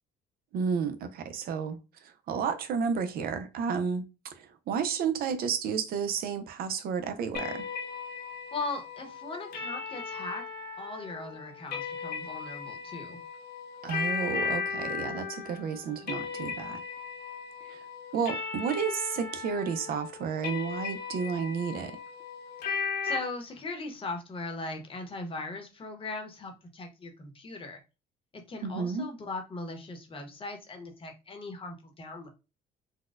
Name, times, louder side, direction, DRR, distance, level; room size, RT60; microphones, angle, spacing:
voice 1, 0.5-7.7 13.8-16.8 17.7-17.8 18.1-22.0 28.6-29.1, right 6 dB, 65° right, 0.5 m, -32 dB
sound 1, 7.3-23.2, left 5 dB, 70° left, 1.1 m, -37 dB
voice 2, 8.5-10.4 10.8-13.2 23.0-27.8 28.3-32.3, left 3 dB, 30° left, 0.9 m, -39 dB
4.1 x 2.2 x 2.4 m
cardioid pair, 110°, 17 cm